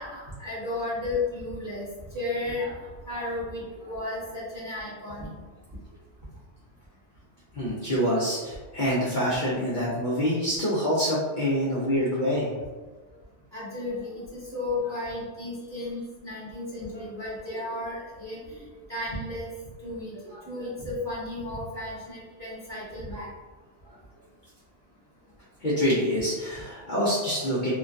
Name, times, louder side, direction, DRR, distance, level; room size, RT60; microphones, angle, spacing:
voice 1, 0.0-1.8 2.1-2.7 3.0-5.3 13.5-18.6 18.9-19.5 19.8-23.3 27.4-27.5, left 2 dB, 20° right, -10 dB, 0.9 m, -33 dB
voice 2, 7.5-12.6 25.6-27.7, equal, 50° left, -8 dB, 0.7 m, -26 dB
3.1 x 2.2 x 2.5 m, 1.3 s
omnidirectional pair, 1.2 m